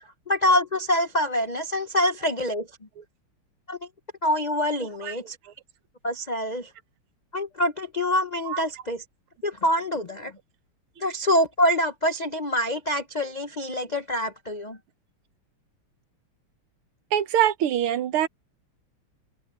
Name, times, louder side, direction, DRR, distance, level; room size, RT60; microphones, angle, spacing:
voice 1, 0.3-2.7 3.7-3.9 4.2-5.4 6.0-6.7 7.3-9.0 9.4-10.3 11.0-14.8, left 1 dB, 65° left, 0.4 m, -25 dB
voice 2, 17.1-18.3, right 11 dB, 80° right, 1.9 m, -23 dB
omnidirectional pair, 2.4 m